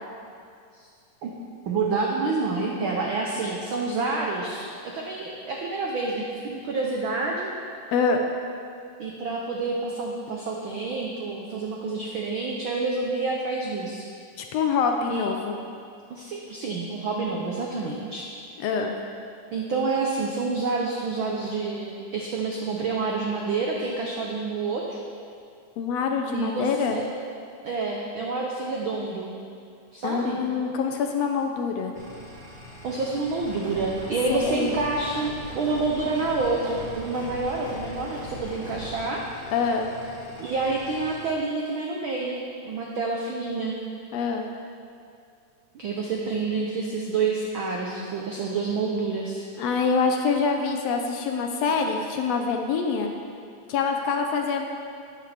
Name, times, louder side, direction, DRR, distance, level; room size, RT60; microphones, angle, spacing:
voice 1, 1.6-7.5 9.0-14.1 15.1-15.3 16.1-18.2 19.5-25.0 26.3-27.0 27.6-29.3 29.9-30.4 32.8-39.5 40.4-42.4 42.6-43.8 45.7-49.4, right 3 dB, 80° right, -1 dB, 1.1 m, -28 dB
voice 2, 7.9-8.2 14.4-15.6 18.6-18.9 25.8-27.0 30.0-31.9 34.3-34.8 39.5-39.9 44.1-44.4 49.6-53.1 53.7-54.7, left 5 dB, 75° left, 3 dB, 1.6 m, -25 dB
sound 1, 31.9-41.3, equal, 35° right, 0.8 m, -45 dB
sound 2, 33.4-39.1, equal, 15° right, 2.0 m, -40 dB
12.0 x 9.1 x 3.4 m, 2.4 s
omnidirectional pair, 3.3 m